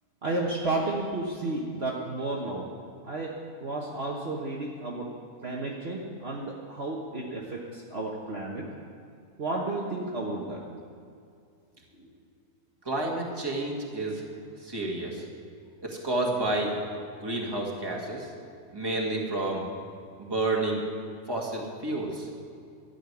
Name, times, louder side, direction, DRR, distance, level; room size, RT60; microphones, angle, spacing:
voice 1, 0.2-2.6 3.1-3.3 3.6-5.1 5.4-8.7 9.4-10.6, right 2 dB, 45° right, -3 dB, 1.5 m, -32 dB
voice 2, 12.8-14.2 14.6-15.3 15.8-16.7 17.2-18.3 18.7-19.6 20.2-20.8 21.3-22.3, right 2 dB, 15° right, -2 dB, 2.1 m, -30 dB
13.0 x 7.2 x 9.7 m, 2.4 s
omnidirectional pair, 1.6 m